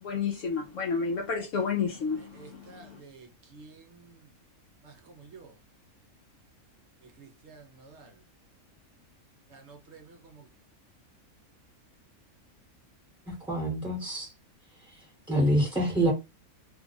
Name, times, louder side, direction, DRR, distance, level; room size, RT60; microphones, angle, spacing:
voice 1, 0.0-3.0, left 5 dB, 65° left, 0.9 m, -31 dB
voice 2, 2.3-4.3 4.8-5.5 7.0-8.1 9.5-10.4, right 4 dB, 55° right, 0.9 m, -51 dB
voice 3, 13.5-14.3 15.3-16.1, right 1 dB, 5° right, 0.9 m, -26 dB
2.8 x 2.3 x 3.9 m
omnidirectional pair, 1.5 m